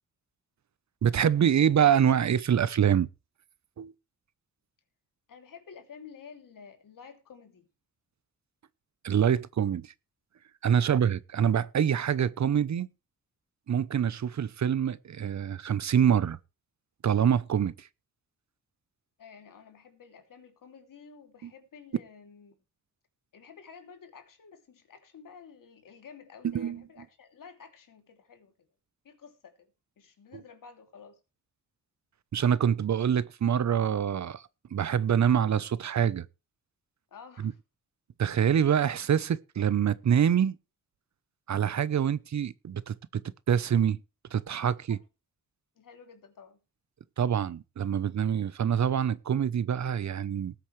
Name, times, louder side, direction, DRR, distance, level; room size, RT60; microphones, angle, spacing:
voice 1, 1.0-3.1 3.8-3.9 9.0-9.9 10.6-12.9 13.7-16.4 17.0-17.9 21.4-21.5 26.4-26.8 32.3-34.4 34.7-36.3 37.4-37.5 38.2-40.6 41.5-43.2 43.5-44.0 44.3-45.0 47.2-50.5, right 8 dB, 60° right, 0.9 m, -25 dB
voice 2, 5.3-7.7 10.8-11.0 19.2-22.5 23.3-28.5 29.0-29.7 30.0-31.2 37.1-37.6 44.7-45.0 45.8-46.6, left 6 dB, 85° left, 2.8 m, -51 dB
19.5 x 8.2 x 3.3 m
wide cardioid pair, 100°, 32 cm